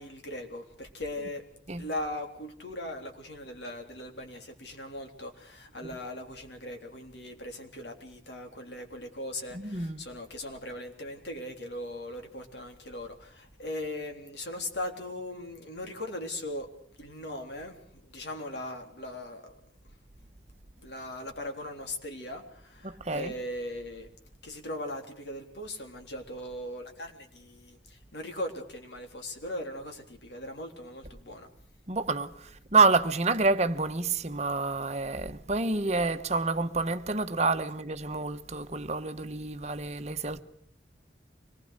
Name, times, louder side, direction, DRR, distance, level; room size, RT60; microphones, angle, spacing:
voice 1, 0.0-1.4 1.8-16.7 17.0-19.5 20.8-24.1 24.4-31.5, left 1 dB, 70° left, 3.7 m, -39 dB
voice 2, 9.5-10.0 22.8-23.3 31.9-40.4, right 3 dB, 40° right, 1.1 m, -28 dB
25.0 x 20.0 x 6.6 m
head